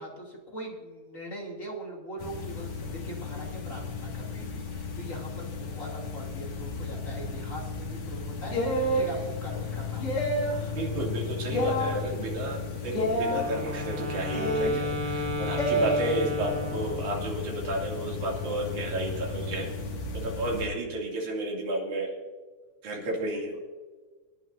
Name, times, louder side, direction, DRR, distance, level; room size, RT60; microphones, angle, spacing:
voice 1, 0.0-10.3 16.7-17.0, right 1 dB, 25° left, -2 dB, 3.1 m, -41 dB
sound 1, 2.2-20.7, left 5 dB, 85° left, 3.7 m, -36 dB
sound 2, 8.5-9.1 10.0-10.6 11.5-12.0 12.9-13.4 14.3-14.8 15.6-15.9, right 1 dB, 50° left, 3.3 m, -27 dB
voice 2, 10.8-19.8 20.2-22.1 22.8-23.6, right 1 dB, 80° right, -3 dB, 4.2 m, -32 dB
Wind instrument woodwind instrument, 13.2-17.4, left 1 dB, 40° right, 2.3 m, -34 dB
26.0 x 11.0 x 2.7 m, 1.4 s
omnidirectional pair, 3.3 m